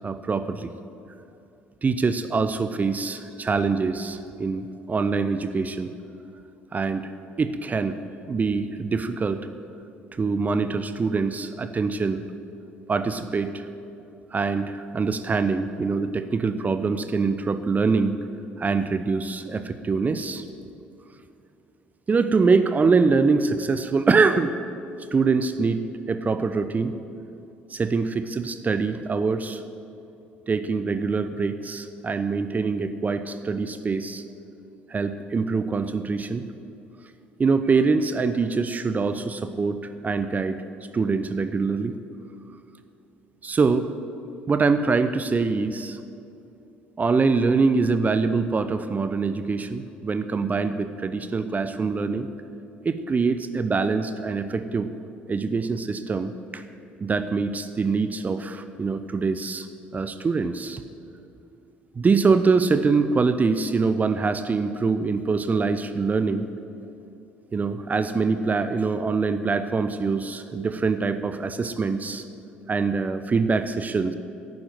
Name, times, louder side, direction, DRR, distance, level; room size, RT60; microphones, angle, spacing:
voice 1, 0.0-0.7 1.8-5.9 6.7-7.1 7.4-8.0 8.3-9.5 10.2-12.2 12.9-13.6 14.3-18.2 18.6-20.4 22.1-24.6 25.1-26.9 27.7-29.6 30.5-34.2 34.9-36.4 37.4-39.8 40.0-40.6 40.9-41.9 43.4-43.9 44.5-46.0 47.0-52.3 52.8-54.9 55.3-56.6 57.0-59.7 59.9-60.8 62.0-66.5 67.5-72.2 72.7-74.1, right 4 dB, 30° right, 11 dB, 0.7 m, -24 dB
11.5 x 9.5 x 9.1 m, 2.7 s
figure-of-eight pair, 55°, 6 cm